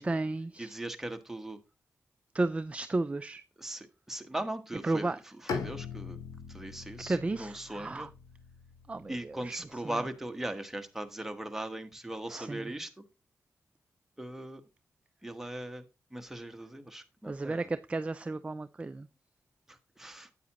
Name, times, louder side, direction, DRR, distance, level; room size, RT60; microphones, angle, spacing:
voice 1, 0.0-0.7 2.3-3.4 4.8-5.2 7.1-8.1 8.9-9.6 12.3-12.7 17.3-19.1, right 2 dB, 20° right, 0.4 m, -33 dB
voice 2, 0.6-1.6 3.6-6.2 6.5-8.1 9.1-13.0 14.2-14.6 15.2-15.8 16.1-17.7 19.7-20.3, right 1 dB, 5° right, 1.2 m, -39 dB
Bowed string instrument, 5.5-9.4, left 5 dB, 85° left, 1.0 m, -41 dB
9.2 x 8.5 x 2.9 m
cardioid pair, 90°, 6 cm